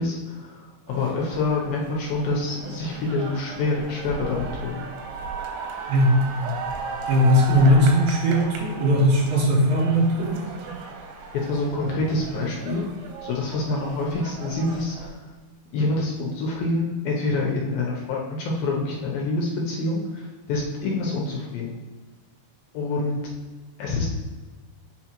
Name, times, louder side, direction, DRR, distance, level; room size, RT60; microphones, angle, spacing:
voice 1, 0.0-4.8 11.3-12.9 13.2-15.2 15.7-21.8 22.7-23.2 23.8-24.1, left 2 dB, 75° left, -2 dB, 2.3 m, -26 dB
sound 1, 0.9-15.1, right 5 dB, 90° right, 3.0 m, -36 dB
voice 2, 5.9-6.3 7.1-10.4, equal, 70° right, -3 dB, 2.8 m, -19 dB
8.2 x 4.3 x 2.9 m, 1.4 s
omnidirectional pair, 4.6 m